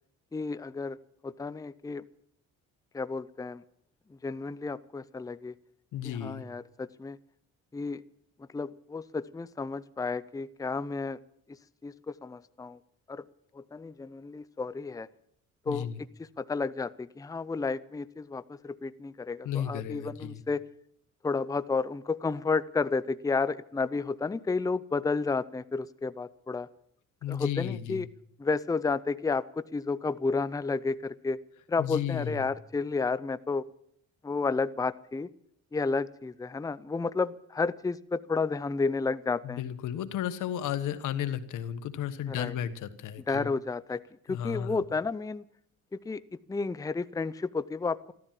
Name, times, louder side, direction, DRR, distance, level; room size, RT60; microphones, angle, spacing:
voice 1, 0.3-1.0 1.2-2.0 2.9-3.6 4.2-5.5 6.0-7.2 7.7-8.0 8.5-11.2 11.5-12.8 13.1-13.3 13.5-15.1 15.7-15.9 16.4-20.6 21.2-26.7 27.3-28.1 28.4-31.4 31.7-33.6 34.2-35.3 35.7-39.6 42.3-42.5 43.3-44.0 44.3-45.4 45.9-46.2 46.5-48.1, left 4 dB, 10° left, 15 dB, 0.6 m, -31 dB
voice 2, 5.9-6.4 15.7-16.0 19.4-20.4 27.2-28.1 31.8-32.5 39.4-43.5 44.3-44.8, left 10 dB, 85° left, 11 dB, 1.3 m, -34 dB
14.5 x 13.0 x 7.5 m, 0.68 s
cardioid pair, 90°, 30 cm